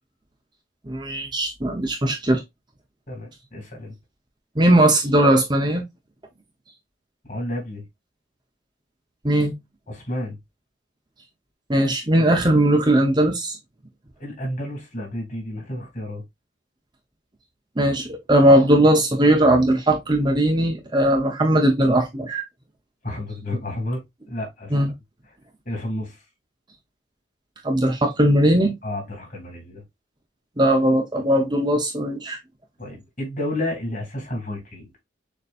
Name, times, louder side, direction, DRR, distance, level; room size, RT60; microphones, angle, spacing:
voice 1, 0.9-2.4 4.6-5.8 9.2-9.5 11.7-13.6 17.8-22.4 24.7-24.9 27.6-28.7 30.6-32.4, right 1 dB, 20° right, 0.9 m, -19 dB
voice 2, 3.1-3.9 7.3-7.8 9.9-10.4 14.2-16.2 23.0-24.8 25.6-26.2 28.8-29.8 32.8-34.9, left 1 dB, 40° left, 2.7 m, -31 dB
6.7 x 3.1 x 2.5 m
head